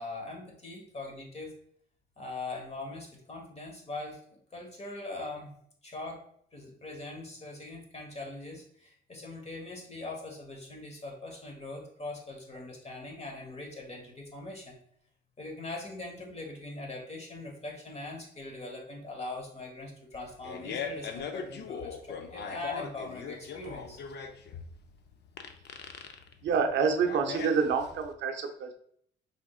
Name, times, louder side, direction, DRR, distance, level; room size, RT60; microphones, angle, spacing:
voice 1, 0.0-1.5 2.2-5.5 5.8-6.2 6.5-14.8 15.4-24.0, left 2 dB, 30° left, 1 dB, 1.3 m, -41 dB
Fart, 20.1-28.1, left 6 dB, 60° left, 0.5 m, -40 dB
voice 2, 26.4-28.7, right 5 dB, 65° right, 4 dB, 0.6 m, -27 dB
5.1 x 3.5 x 2.4 m, 0.64 s
cardioid pair, 90°, 20 cm